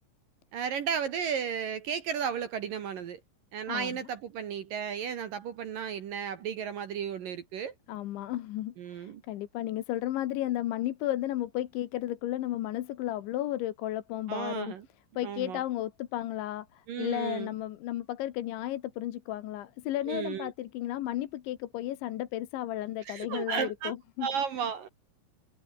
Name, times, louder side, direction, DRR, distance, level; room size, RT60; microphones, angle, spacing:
voice 1, 0.5-3.2 3.5-7.7 8.8-9.2 14.3-14.8 15.2-15.6 16.9-17.5 20.1-20.5 23.1-23.9 24.2-24.9, right 7 dB, 60° right, 2.5 m, -34 dB
voice 2, 3.7-4.0 7.9-14.7 15.2-24.3, left 14 dB, 70° left, 3.6 m, -33 dB
omnidirectional pair, 5.7 m